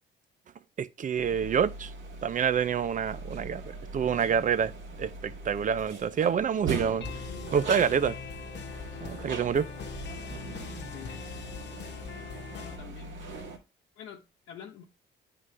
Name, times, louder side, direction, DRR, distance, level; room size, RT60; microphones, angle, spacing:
voice 1, 0.8-1.9 2.2-3.6 3.9-4.7 5.0-7.0 7.5-8.2 9.0-9.7, right 7 dB, 40° right, 0.5 m, -27 dB
sound 1, 1.1-13.6, right 4 dB, 70° right, 1.9 m, -41 dB
sound 2, 4.9-5.7 6.1-12.8, left 5 dB, 60° left, 1.0 m, -41 dB
voice 2, 7.3-7.6 10.9-11.2 12.5-13.5 14.0-14.8, left 8 dB, 85° left, 0.9 m, -47 dB
9.5 x 3.8 x 3.3 m
cardioid pair, 90°, 20 cm